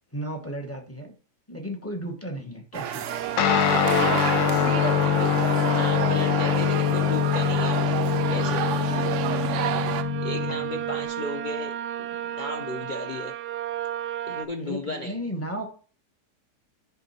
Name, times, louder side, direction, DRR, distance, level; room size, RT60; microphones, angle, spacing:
voice 1, 0.1-1.1 1.5-3.0 14.6-15.7, right 1 dB, 10° left, 3 dB, 0.7 m, -35 dB
sound 1, 2.7-10.0, right 9 dB, 90° right, 0.6 m, -30 dB
sound 2, 3.1-14.5, right 11 dB, 75° right, 1.0 m, -32 dB
Guitar, 3.4-11.1, left 11 dB, 85° left, 1.4 m, -24 dB
voice 2, 5.7-7.8 8.3-8.6 10.2-13.4 14.3-15.2, left 2 dB, 65° left, 3 dB, 0.4 m, -34 dB
10.5 x 3.6 x 4.2 m, 0.40 s
omnidirectional pair, 1.9 m